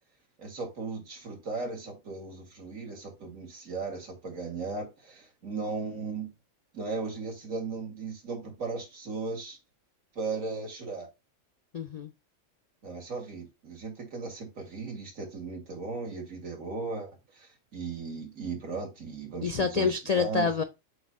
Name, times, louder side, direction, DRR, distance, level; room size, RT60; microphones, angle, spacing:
voice 1, 0.4-6.3 6.7-9.6 10.2-11.1 12.8-17.1 17.3-20.5, right 4 dB, 85° right, 1 dB, 2.4 m, -36 dB
voice 2, 11.7-12.1 19.4-20.6, left 5 dB, 65° left, 9 dB, 0.3 m, -27 dB
7.8 x 2.7 x 5.2 m, 0.24 s
omnidirectional pair, 1.4 m